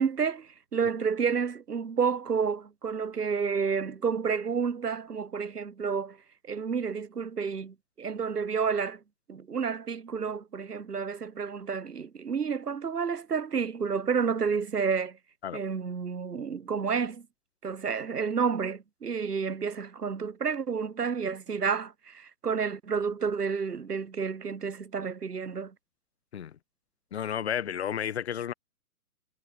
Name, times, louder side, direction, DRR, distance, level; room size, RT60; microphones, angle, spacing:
voice 1, 0.0-6.2 6.5-9.0 9.3-15.2 15.5-17.3 17.6-25.7, right 6 dB, 90° right, 0.7 m, -30 dB
voice 2, 27.1-28.5, left 9 dB, 45° left, 0.8 m, -32 dB
figure-of-eight pair, 125°, 45 cm